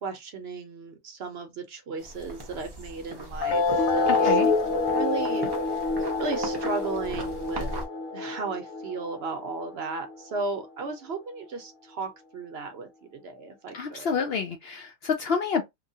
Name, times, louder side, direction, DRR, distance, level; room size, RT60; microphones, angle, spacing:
voice 1, 0.0-5.9 6.2-7.7 8.1-14.2, right 4 dB, 55° right, 0.9 m, -35 dB
sound 1, 2.0-7.8, right 1 dB, 25° right, 0.7 m, -38 dB
sound 2, 3.4-10.4, left 3 dB, 80° left, 1.0 m, -27 dB
voice 2, 4.0-4.5 13.7-15.6, left 6 dB, 65° left, 0.6 m, -28 dB
2.9 x 2.3 x 2.6 m
omnidirectional pair, 1.3 m